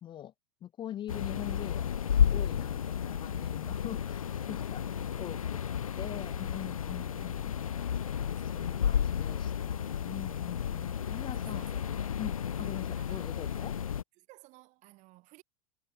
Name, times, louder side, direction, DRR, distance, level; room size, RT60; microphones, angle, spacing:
voice 1, 0.0-0.3 0.6-5.6 6.0-7.5 8.4-13.7, left 11 dB, 25° left, 0.7 m, -43 dB
sound 1, 1.1-14.0, left 8 dB, 80° left, 0.4 m, -32 dB
voice 2, 4.8-6.3 8.4-9.1 11.4-12.2 12.5-13.7 14.2-15.4, right 21 dB, 45° right, 3.0 m, -59 dB
figure-of-eight pair, 85°, 18 cm